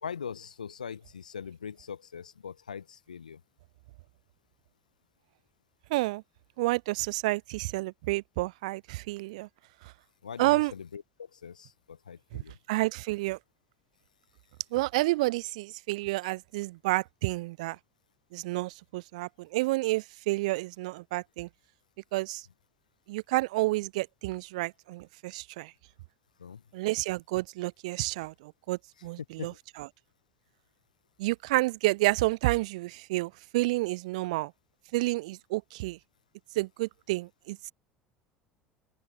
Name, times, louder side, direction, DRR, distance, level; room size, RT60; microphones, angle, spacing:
voice 1, 0.0-3.4 10.2-11.0 11.3-12.6 20.4-20.5 26.4-26.6 29.4-29.6, left 7 dB, 80° left, 1.4 m, -41 dB
voice 2, 5.9-6.2 6.6-9.5 10.4-10.7 12.3-12.4 12.7-13.4 14.7-17.8 18.3-21.5 22.1-22.4 23.1-25.7 26.7-29.9 31.2-34.5 34.9-36.0 36.5-37.7, right 21 dB, 65° right, 0.5 m, -30 dB
open air
figure-of-eight pair, 65°, 4 cm